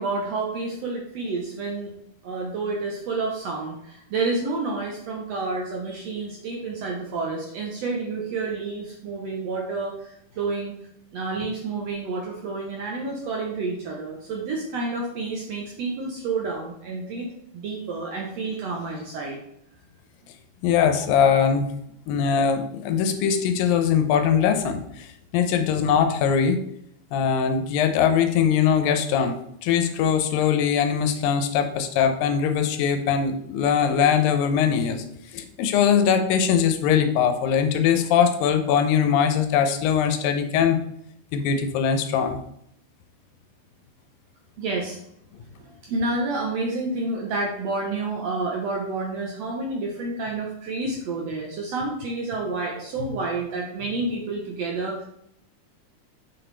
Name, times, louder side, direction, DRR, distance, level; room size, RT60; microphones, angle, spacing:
voice 1, 0.0-1.9 2.2-10.7 11.1-17.3 17.5-19.4 44.6-45.0 45.6-55.0, right 3 dB, 70° right, -1 dB, 1.6 m, -29 dB
voice 2, 20.6-21.7 22.1-26.6 27.1-29.4 29.6-35.0 35.3-40.8 41.3-42.4 53.0-53.1, left 7 dB, 85° left, 8 dB, 2.5 m, -21 dB
6.4 x 6.0 x 3.3 m, 0.74 s
omnidirectional pair, 4.0 m